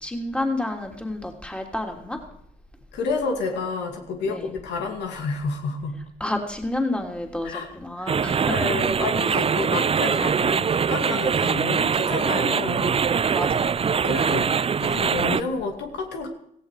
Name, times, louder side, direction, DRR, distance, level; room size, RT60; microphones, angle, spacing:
voice 1, 0.0-2.2 4.2-4.5 6.2-8.7 9.3-9.5 13.3-13.8, left 1 dB, 5° left, 3 dB, 3.2 m, -30 dB
voice 2, 2.9-6.0 7.4-7.7 8.0-8.1 8.5-13.0 14.0-16.3, left 4 dB, 75° left, 3 dB, 2.5 m, -30 dB
sound 1, 8.1-15.4, right 6 dB, 30° right, 0.5 m, -23 dB
17.5 x 15.5 x 5.0 m, 0.71 s
hypercardioid pair, 50°, 18 cm